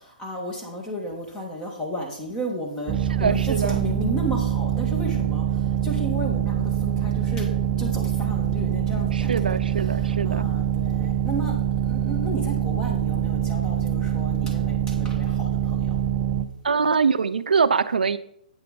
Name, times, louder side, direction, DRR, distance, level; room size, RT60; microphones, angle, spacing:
voice 1, 0.2-2.9 3.2-5.4 5.8-7.5 7.8-9.6 9.8-10.0 10.2-11.6 11.9-15.9, equal, 15° left, 1 dB, 2.0 m, -33 dB
sound 1, 2.9-16.5, right 10 dB, 25° right, 0.7 m, -24 dB
voice 2, 3.2-3.8 9.1-10.5 16.6-18.2, right 5 dB, 80° right, 14 dB, 0.5 m, -23 dB
8.7 x 5.8 x 5.2 m, 0.70 s
hypercardioid pair, 140°, 5 cm